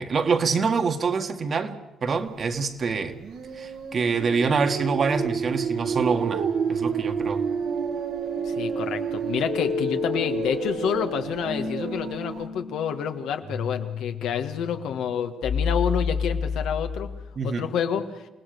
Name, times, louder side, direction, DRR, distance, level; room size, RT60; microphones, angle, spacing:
voice 1, 0.0-3.2 3.5-7.4 17.4-17.6, right 5 dB, 50° right, 6 dB, 1.9 m, -26 dB
sound 1, 3.2-12.5, right 6 dB, 75° right, 2.3 m, -29 dB
voice 2, 8.4-17.1 17.4-18.3, left 7 dB, 85° left, 6 dB, 1.8 m, -28 dB
sound 2, 9.4-17.3, left 6 dB, 60° left, 3.3 m, -31 dB
28.0 x 18.0 x 6.9 m, 1.0 s
cardioid pair, 90°, 0 cm